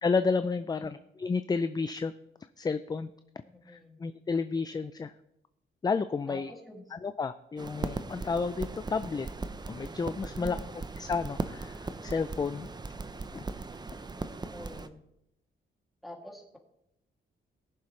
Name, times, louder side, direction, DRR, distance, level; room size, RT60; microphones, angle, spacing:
voice 1, 0.0-2.1 2.6-3.1 3.7-5.1 5.8-6.5 6.9-9.3 9.7-10.6 11.0-12.7 13.3-13.4, left 4 dB, 20° left, 12 dB, 0.4 m, -31 dB
voice 2, 3.6-4.0 6.3-7.0 10.4-10.8 14.5-15.0 16.0-16.6, left 1 dB, ahead, 0 dB, 2.5 m, -46 dB
sound 1, 7.6-14.9, right 3 dB, 20° right, 0.6 m, -38 dB
19.0 x 7.0 x 3.2 m, 0.81 s
cardioid pair, 105°, 20 cm